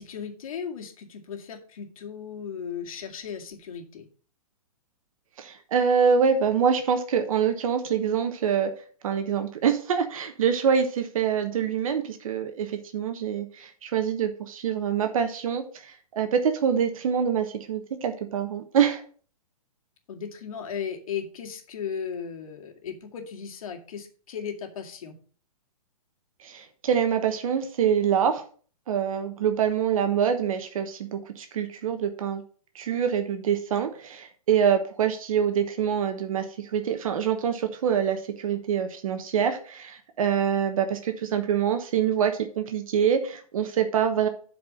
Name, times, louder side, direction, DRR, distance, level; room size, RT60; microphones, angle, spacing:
voice 1, 0.0-4.1 20.1-25.2, left 7 dB, 65° left, 3 dB, 2.1 m, -36 dB
voice 2, 5.4-8.7 9.0-19.0 26.4-28.4 28.9-32.4 32.7-44.3, right 7 dB, 65° right, 7 dB, 1.2 m, -25 dB
8.0 x 4.8 x 6.3 m, 0.43 s
hypercardioid pair, 145°, 19 cm